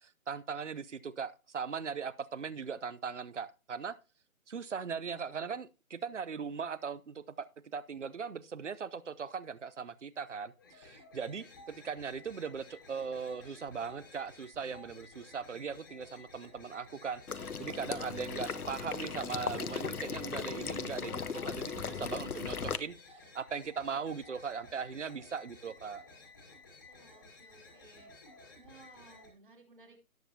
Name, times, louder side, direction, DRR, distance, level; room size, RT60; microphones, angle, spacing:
voice 1, 0.0-4.0 4.5-22.9 23.3-26.0, right 6 dB, 55° right, 17 dB, 0.9 m, -39 dB
sound 1, 10.6-29.3, left 3 dB, 15° left, 1.7 m, -55 dB
Water / Liquid, 17.3-22.8, left 5 dB, 90° left, 1.2 m, -37 dB
voice 2, 26.9-28.1 28.5-30.0, right 3 dB, 35° right, 4 dB, 2.8 m, -58 dB
18.0 x 7.2 x 2.8 m, 0.31 s
figure-of-eight pair, 175°, 43 cm